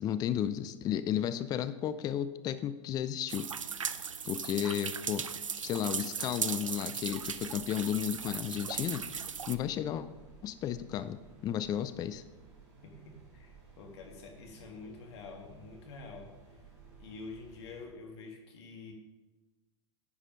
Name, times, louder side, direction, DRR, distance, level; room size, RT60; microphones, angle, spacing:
voice 1, 0.0-3.5 4.2-5.2 5.6-9.2 9.5-10.1 10.4-12.2, left 10 dB, 25° left, 12 dB, 0.4 m, -33 dB
sound 1, 3.3-9.6, right 6 dB, 85° right, 0.4 m, -37 dB
sound 2, 7.0-17.9, right 5 dB, 50° right, 3.4 m, -56 dB
voice 2, 12.8-16.3 17.0-18.9, left 3 dB, 55° left, 2 dB, 1.7 m, -47 dB
10.0 x 4.9 x 5.2 m, 1.1 s
figure-of-eight pair, 95°, 16 cm